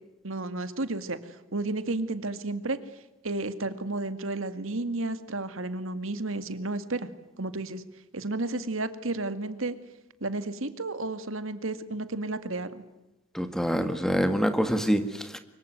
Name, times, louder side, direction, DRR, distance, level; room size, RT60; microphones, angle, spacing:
voice 1, 0.2-1.2 1.5-2.8 3.2-7.1 7.4-7.8 8.1-9.8 10.2-12.9, right 2 dB, 70° right, 11 dB, 2.1 m, -32 dB
voice 2, 13.3-15.4, equal, ahead, 8 dB, 1.9 m, -26 dB
25.0 x 22.5 x 9.3 m, 0.96 s
head